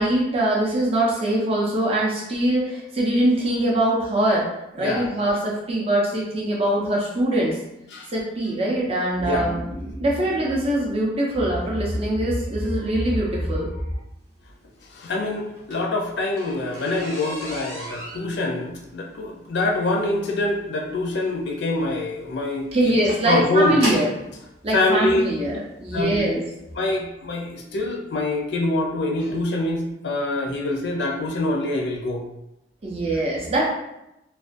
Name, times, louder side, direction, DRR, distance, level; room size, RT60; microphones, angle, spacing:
voice 1, 0.0-4.5 4.7-7.6 8.1-13.8 22.7-24.1 24.6-26.4 32.8-33.6, right 1 dB, 35° right, -4 dB, 0.5 m, -23 dB
voice 2, 4.8-5.1 7.9-8.1 9.2-9.5 14.9-22.9 23.2-23.8 24.7-25.3 25.9-26.3 26.8-32.2, left 2 dB, 65° left, 0 dB, 0.4 m, -25 dB
sound 1, 15.4-24.3 25.2-25.3 25.9-26.1 26.4-26.5 26.8-26.9, equal, 85° right, 0.9 m, -35 dB
2.3 x 2.1 x 2.5 m, 0.87 s
head